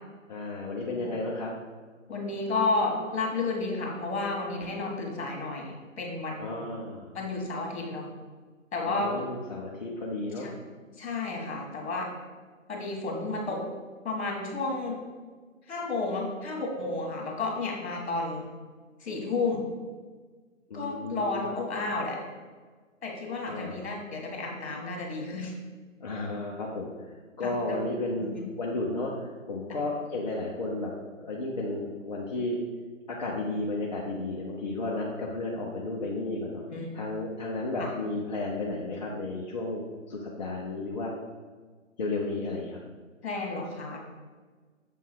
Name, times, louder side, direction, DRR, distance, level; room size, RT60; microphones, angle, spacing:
voice 1, 0.3-1.5 6.4-7.1 8.8-10.5 20.7-21.4 23.5-23.8 26.0-30.9 31.2-32.6 33.1-36.6 36.9-41.1 42.0-42.8, left 2 dB, 35° left, -4 dB, 0.7 m, -33 dB
voice 2, 2.1-6.7 7.1-8.1 8.7-9.1 10.4-10.5 11.0-12.1 12.7-13.6 14.0-15.0 15.7-18.4 19.0-19.6 20.7-22.2 23.0-25.5 27.4-27.8 28.2-28.4 29.7-29.8 36.7-36.9 37.8-37.9 43.2-44.0, left 3 dB, 55° left, 0 dB, 1.9 m, -32 dB
7.2 x 3.6 x 4.6 m, 1.4 s
figure-of-eight pair, 150°, 40 cm